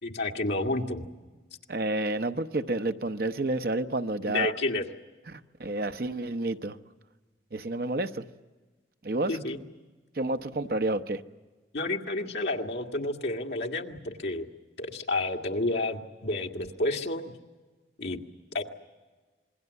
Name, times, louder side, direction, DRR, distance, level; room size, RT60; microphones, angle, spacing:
voice 1, 0.0-1.1 4.3-4.8 9.3-9.6 11.7-14.5 14.8-17.4 18.0-18.2 18.5-18.6, left 2 dB, 70° left, 1 dB, 2.0 m, -30 dB
voice 2, 1.7-4.5 5.3-6.8 7.5-8.3 9.0-9.3 10.1-11.2, right 2 dB, 55° right, 8 dB, 0.8 m, -30 dB
27.0 x 21.5 x 8.1 m, 1.3 s
head